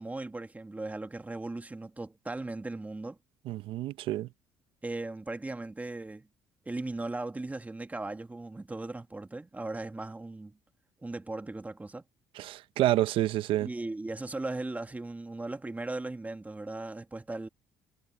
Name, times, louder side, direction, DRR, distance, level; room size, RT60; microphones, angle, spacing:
voice 1, 0.0-3.2 4.8-6.3 6.7-10.6 11.0-12.0 13.6-17.5, right 2 dB, 15° right, 2.0 m, -38 dB
voice 2, 3.5-4.3 12.4-13.7, right 14 dB, 70° right, 0.9 m, -28 dB
supercardioid pair, 70°, 9 cm